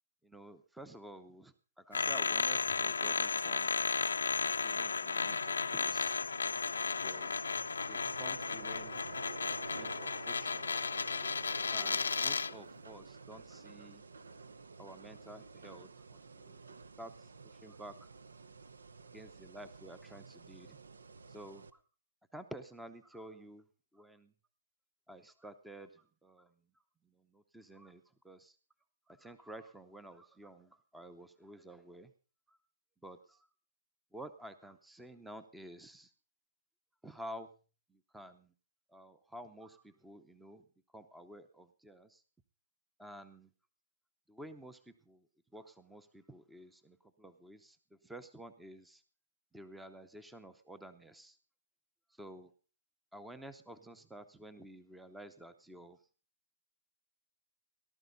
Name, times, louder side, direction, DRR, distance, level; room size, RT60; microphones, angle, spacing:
voice 1, 0.2-3.7 4.6-6.2 7.0-7.3 7.9-10.7 11.7-14.0 14.8-16.6 17.0-18.1 19.1-20.8 21.3-21.8 22.3-23.7 23.9-24.3 25.1-26.7 27.0-28.6 29.1-32.1 32.5-32.6 33.0-33.5 34.1-36.1 37.0-37.5 37.9-38.5 38.9-40.7 40.9-42.2 43.0-43.5 44.3-49.0 49.5-51.4 52.1-52.5 53.1-56.0, right 1 dB, 5° right, 12 dB, 0.7 m, -51 dB
sound 1, 1.9-12.6, left 5 dB, 90° left, 0.6 m, -34 dB
sound 2, 4.4-21.7, right 4 dB, 85° right, 0.9 m, -51 dB
18.5 x 12.0 x 4.0 m, 0.37 s
hypercardioid pair, 150°, 0 cm